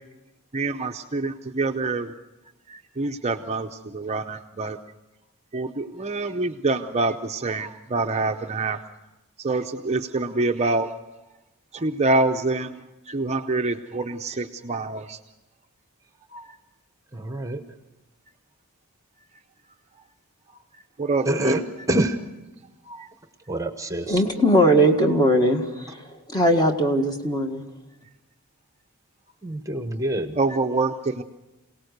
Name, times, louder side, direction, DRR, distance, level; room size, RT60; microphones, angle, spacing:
voice 1, 0.5-2.1 2.7-4.8 5.5-8.8 9.4-10.9 11.7-15.2 16.3-16.5 21.0-21.5 22.9-23.1 30.4-31.2, right 3 dB, 30° right, 5 dB, 0.6 m, -26 dB
voice 2, 17.1-17.6 21.2-21.6 21.9-22.2 23.5-24.2 29.4-30.4, right 1 dB, 15° right, 8 dB, 1.0 m, -26 dB
voice 3, 24.1-27.6, equal, 20° left, 4 dB, 1.7 m, -20 dB
27.0 x 18.0 x 6.6 m, 1.0 s
head